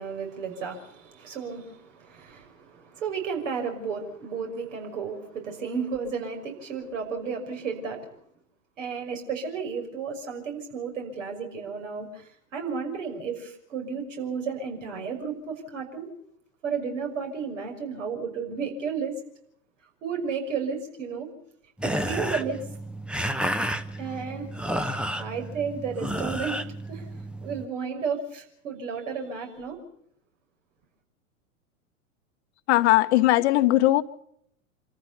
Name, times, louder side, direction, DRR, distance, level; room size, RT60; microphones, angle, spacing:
voice 1, 0.0-8.2 8.8-16.1 16.6-19.1 20.0-21.3 21.9-22.6 24.0-24.5 24.7-26.6 26.9-27.1 27.4-29.8, right 5 dB, 60° right, 4 dB, 6.3 m, -33 dB
sound 1, 21.8-27.6, right 1 dB, ahead, 1.0 m, -31 dB
voice 2, 32.7-34.0, left 16 dB, 50° left, 12 dB, 1.2 m, -19 dB
27.0 x 14.5 x 6.8 m, 0.71 s
figure-of-eight pair, 100°, 42 cm